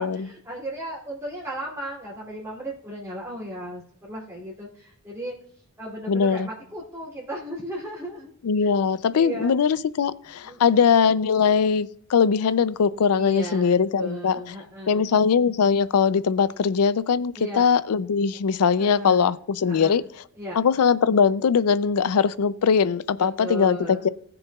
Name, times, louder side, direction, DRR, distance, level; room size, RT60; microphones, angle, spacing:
voice 1, 0.0-5.3 5.8-8.3 8.6-8.7 9.1-9.6 10.4-10.9 13.1-15.0 17.3-17.7 18.8-19.3 19.6-19.9 20.4-20.6 23.2-24.1, right 1 dB, 15° right, -7 dB, 2.5 m, -36 dB
voice 2, 6.1-6.5 8.4-14.4 14.9-20.0 20.6-24.1, left 6 dB, 85° left, 17 dB, 0.4 m, -21 dB
19.5 x 7.0 x 2.3 m, 0.64 s
head